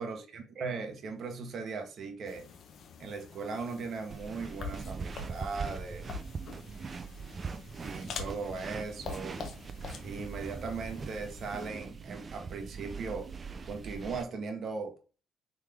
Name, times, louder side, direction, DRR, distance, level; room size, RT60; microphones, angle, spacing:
voice 1, 0.0-2.5 3.0-6.1 7.8-9.4 10.0-13.3 13.6-14.9, right 4 dB, 55° right, 1.0 m, -38 dB
sound 1, 2.2-11.7, left 5 dB, 60° left, 0.8 m, -46 dB
sound 2, 4.1-14.2, right 5 dB, 40° right, 0.5 m, -41 dB
3.9 x 3.2 x 3.3 m
hypercardioid pair, 55°, 0 cm